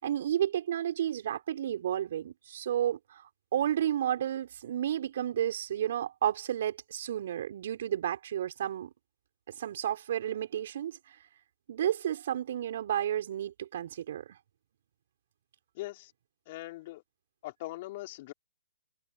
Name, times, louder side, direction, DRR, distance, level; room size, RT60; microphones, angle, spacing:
voice 1, 0.0-8.9 9.6-11.0 11.7-14.2, right 10 dB, 55° right, 6.2 m, -31 dB
voice 2, 15.7-16.1 16.5-17.0 17.4-18.3, left 18 dB, 40° left, 4.3 m, -41 dB
hypercardioid pair, 140°, 0 cm